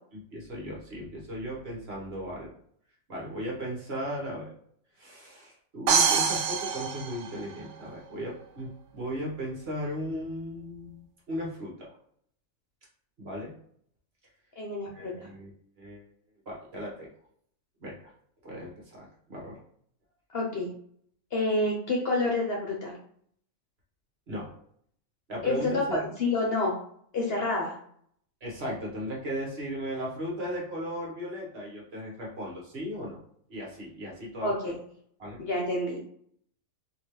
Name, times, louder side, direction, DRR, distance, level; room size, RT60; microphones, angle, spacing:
voice 1, 0.3-2.5 3.1-4.5 5.0-11.9 13.2-13.5 14.8-15.5 15.8-16.1 16.4-17.1 17.8-18.1 18.4-19.6 24.3-24.5 25.3-26.0 28.4-33.2 33.5-34.7 35.2-35.4, equal, 45° right, -3 dB, 1.5 m, -36 dB
sound 1, 5.9-7.8, right 6 dB, 65° right, 0.8 m, -25 dB
voice 2, 14.6-15.3 20.3-20.7 21.3-22.9 25.4-26.8 27.1-27.8 34.4-34.7 35.4-36.1, left 2 dB, 50° left, -1 dB, 0.9 m, -28 dB
4.1 x 2.9 x 3.1 m, 0.63 s
omnidirectional pair, 1.5 m